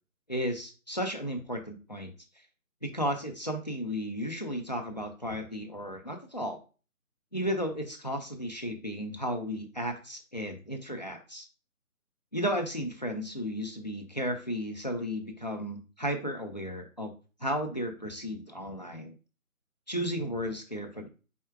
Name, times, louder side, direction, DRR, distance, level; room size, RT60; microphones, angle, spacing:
voice 1, 0.3-2.1 2.8-6.6 7.3-11.5 12.3-17.1 17.4-19.1 19.9-21.1, equal, 30° left, 4 dB, 0.6 m, -34 dB
4.5 x 4.2 x 2.4 m, 0.34 s
figure-of-eight pair, 160°, 43 cm